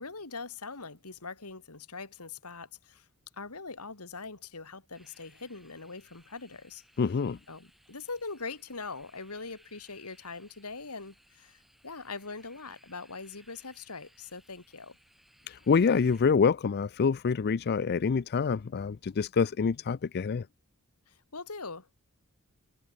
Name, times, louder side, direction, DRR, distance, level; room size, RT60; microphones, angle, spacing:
voice 1, 0.0-3.1 3.3-6.8 7.5-15.0 21.1-21.9, left 4 dB, 90° left, 3.0 m, -42 dB
sound 1, 4.9-16.2, equal, ahead, 6.3 m, -63 dB
voice 2, 7.0-7.4 15.5-20.5, left 5 dB, 45° left, 0.4 m, -26 dB
head